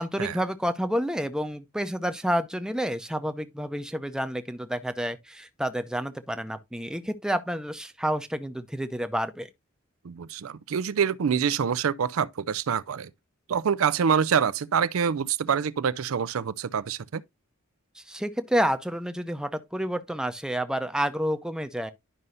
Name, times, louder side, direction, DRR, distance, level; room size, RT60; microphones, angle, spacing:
voice 1, 0.0-9.5 17.9-21.9, equal, 5° right, 0.6 m, -29 dB
voice 2, 10.0-13.1 13.5-17.2, right 7 dB, 85° right, 0.5 m, -26 dB
11.0 x 5.4 x 2.6 m
head